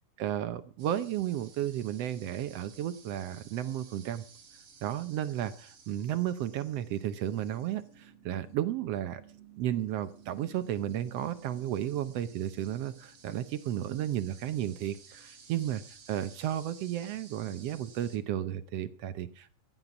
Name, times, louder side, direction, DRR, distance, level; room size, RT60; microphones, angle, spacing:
voice 1, 0.2-4.2 4.8-9.2 9.6-15.8 16.1-19.5, right 11 dB, 70° right, 12 dB, 1.5 m, -33 dB
sound 1, 0.8-18.2, right 6 dB, 55° right, 3.4 m, -55 dB
15.0 x 9.6 x 6.0 m, 0.43 s
omnidirectional pair, 3.5 m